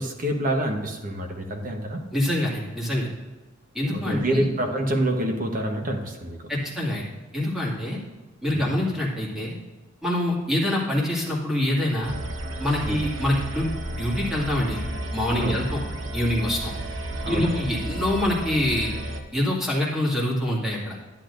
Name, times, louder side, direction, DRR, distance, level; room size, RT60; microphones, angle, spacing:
voice 1, 0.0-2.0 3.9-6.4 8.5-8.8 12.8-13.0 15.4-15.6 17.2-17.7, right 1 dB, 45° right, 3 dB, 1.1 m, -27 dB
voice 2, 2.1-3.1 3.7-4.4 6.5-7.1 7.3-8.0 8.4-9.5 10.0-12.1 12.6-14.8 15.1-15.8 16.1-16.7 17.3-18.9 19.3-21.0, left 1 dB, ahead, -5 dB, 2.1 m, -25 dB
sound 1, 12.0-19.2, right 1 dB, 70° right, 1.0 m, -32 dB
10.5 x 10.0 x 2.6 m, 1.2 s
head